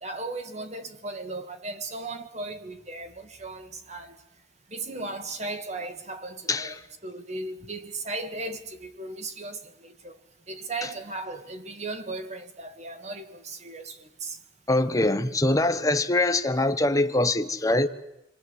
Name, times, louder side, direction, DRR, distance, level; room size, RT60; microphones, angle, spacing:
voice 1, 0.0-4.2 4.7-10.2 10.5-14.4, right 2 dB, 35° right, 1.9 m, -36 dB
voice 2, 14.7-17.9, left 2 dB, 20° left, 1.2 m, -23 dB
28.5 x 23.0 x 8.1 m
head